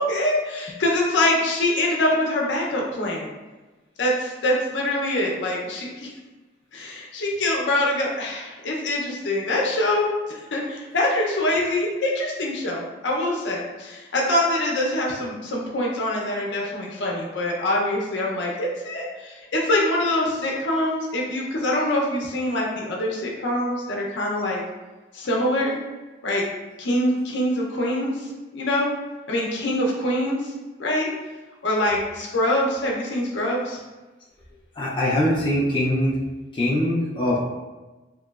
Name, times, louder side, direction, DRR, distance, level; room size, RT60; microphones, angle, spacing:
voice 1, 0.0-3.3 4.0-6.1 6.7-24.6 25.1-25.8 26.2-26.4 26.8-28.9 29.3-30.5 30.8-31.1 31.6-33.8, left 1 dB, 80° left, -2 dB, 0.6 m, -24 dB
voice 2, 34.8-36.2 36.5-37.4, left 1 dB, 25° left, -6 dB, 0.4 m, -22 dB
3.0 x 2.8 x 2.3 m, 1.2 s
head